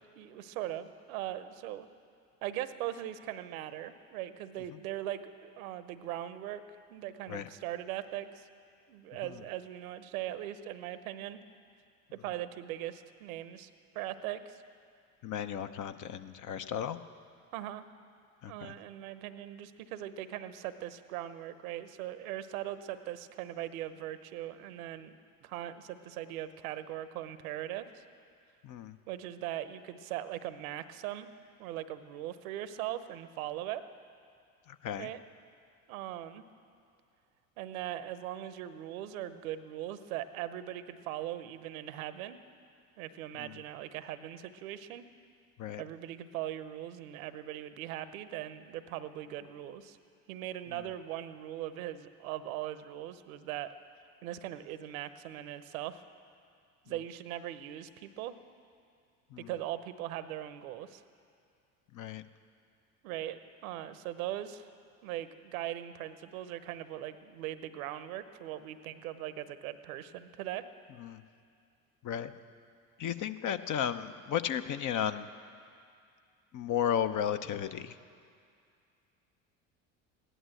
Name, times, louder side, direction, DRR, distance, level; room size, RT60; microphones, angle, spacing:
voice 1, 0.1-1.9 2.4-6.6 6.9-8.5 8.9-11.4 12.1-13.7 13.9-14.6 17.5-17.8 18.5-25.1 25.4-28.0 29.1-31.3 31.6-33.8 35.0-35.2 35.9-36.4 37.6-42.4 43.0-45.0 45.8-50.0 50.3-53.7 54.2-56.0 56.9-58.3 59.4-61.0 63.0-64.7 65.0-70.6, right 13 dB, 80° right, 13 dB, 0.9 m, -40 dB
voice 2, 15.2-17.0 18.4-18.7 28.6-28.9 34.7-35.1 43.4-43.5 45.6-45.8 59.3-59.5 61.9-62.2 71.0-71.2 72.0-72.3 73.0-75.3 76.5-78.0, left 9 dB, 45° left, 10 dB, 0.8 m, -34 dB
16.5 x 11.0 x 7.8 m, 2.3 s
hypercardioid pair, 70°, 42 cm